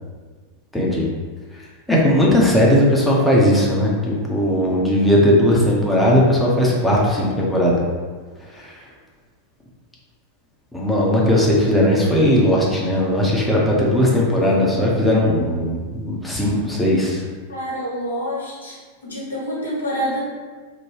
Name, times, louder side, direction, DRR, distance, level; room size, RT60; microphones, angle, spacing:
voice 1, 0.7-1.0 1.9-7.8 8.5-8.7 10.7-17.2, left 1 dB, 5° left, -4 dB, 0.6 m, -17 dB
voice 2, 17.5-18.8 19.0-20.2, equal, 75° left, -5 dB, 0.8 m, -27 dB
2.6 x 2.2 x 3.1 m, 1.5 s
figure-of-eight pair, 90°, 0 cm